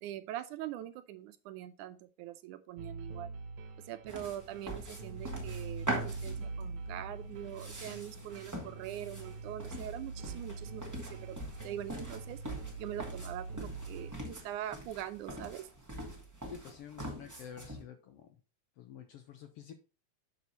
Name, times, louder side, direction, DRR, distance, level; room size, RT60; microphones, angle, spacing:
voice 1, 0.0-3.3 3.9-10.8 11.2-11.4 11.6-12.4 12.8-15.7, right 12 dB, 90° right, 11 dB, 2.2 m, -43 dB
sound 1, 2.8-14.1, right 4 dB, 70° right, 2.4 m, -44 dB
sound 2, 4.1-17.8, right 1 dB, 10° right, 1.0 m, -43 dB
sound 3, 4.8-12.2, left 4 dB, 15° left, 1.8 m, -60 dB
voice 2, 16.5-18.3 18.8-19.7, left 9 dB, 70° left, 6 dB, 1.5 m, -49 dB
7.0 x 6.1 x 4.1 m, 0.33 s
omnidirectional pair, 3.5 m